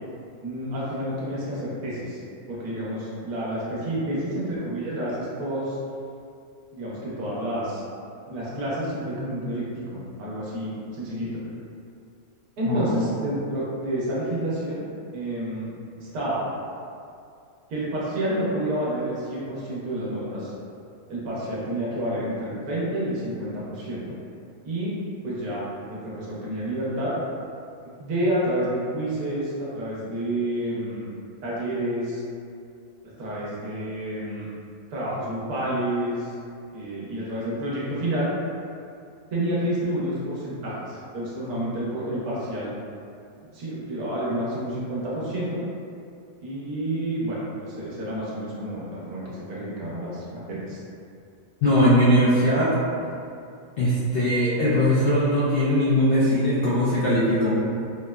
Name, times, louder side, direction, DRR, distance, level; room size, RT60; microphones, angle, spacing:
voice 1, 0.4-2.2 2.5-5.8 6.7-7.8 8.3-11.4 12.6-14.8 15.1-15.7 16.0-16.4 17.7-20.5 21.1-24.1 24.6-24.9 25.2-25.6 25.9-27.1 28.0-31.1 31.4-32.2 33.2-34.5 34.9-36.3 36.7-38.3 39.3-42.7 43.5-45.6 46.4-50.8, right 1 dB, 85° right, -7 dB, 1.3 m, -29 dB
voice 2, 51.6-52.7 53.8-57.6, equal, 75° left, -10 dB, 0.5 m, -20 dB
3.4 x 2.0 x 2.2 m, 2.5 s
omnidirectional pair, 1.6 m